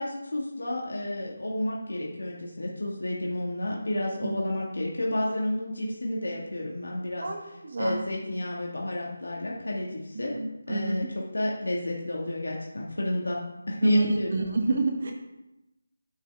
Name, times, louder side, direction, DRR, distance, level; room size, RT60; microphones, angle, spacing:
voice 1, 0.0-10.4 10.7-13.4 13.7-14.4, left 1 dB, 90° left, -2 dB, 1.9 m, -30 dB
voice 2, 7.2-8.0 10.3-11.0 13.8-15.1, right 2 dB, 50° right, 2 dB, 1.1 m, -29 dB
8.6 x 7.4 x 3.5 m, 0.95 s
figure-of-eight pair, 170°, 0 cm